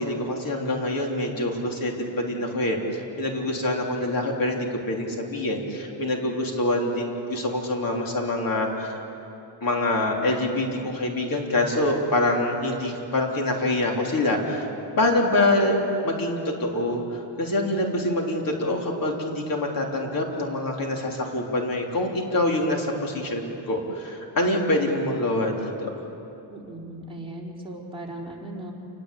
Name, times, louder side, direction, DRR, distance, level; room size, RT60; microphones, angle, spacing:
voice 1, 0.0-9.0 9.6-14.7 15.0-25.9, left 1 dB, 50° left, 1 dB, 3.7 m, -25 dB
voice 2, 26.5-28.7, right 1 dB, 10° right, -3 dB, 4.4 m, -37 dB
28.5 x 21.0 x 8.4 m, 2.9 s
cardioid pair, 130°, 44 cm